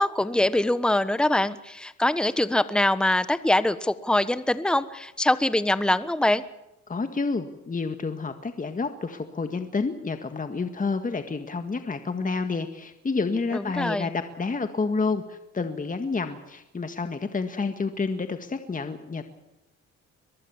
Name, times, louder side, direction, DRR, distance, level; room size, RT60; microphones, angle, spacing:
voice 1, 0.0-6.4 13.5-14.1, left 1 dB, 5° left, 14 dB, 1.2 m, -23 dB
voice 2, 6.9-19.2, left 4 dB, 25° left, 8 dB, 1.8 m, -29 dB
23.5 x 21.0 x 7.2 m, 0.90 s
cardioid pair, 90°, 30 cm